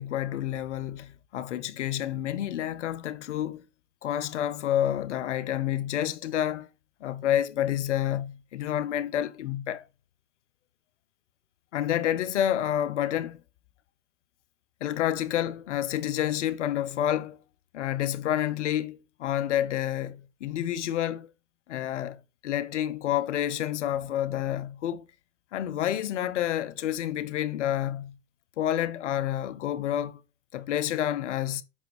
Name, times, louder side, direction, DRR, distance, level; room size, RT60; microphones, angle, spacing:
voice 1, 0.0-3.6 4.0-6.7 7.0-9.9 11.7-13.4 14.8-17.4 17.7-21.3 21.7-25.1 25.5-28.2 28.6-30.2 30.5-31.6, left 11 dB, 80° left, 0.8 m, -29 dB
7.2 x 5.7 x 3.0 m
hypercardioid pair, 95°, 35 cm